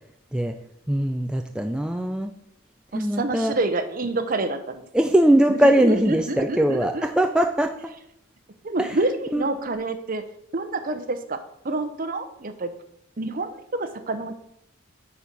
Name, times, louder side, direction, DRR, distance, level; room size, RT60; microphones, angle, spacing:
voice 1, 0.9-2.3 2.9-3.6 4.9-7.7 8.8-9.0 9.3-9.5, right 1 dB, 5° right, 5 dB, 0.3 m, -21 dB
voice 2, 2.9-4.8 5.5-7.1 8.6-10.2 10.5-11.4 11.6-12.7 13.2-14.3, right 2 dB, 40° right, 9 dB, 0.7 m, -28 dB
9.3 x 4.3 x 5.3 m, 0.77 s
head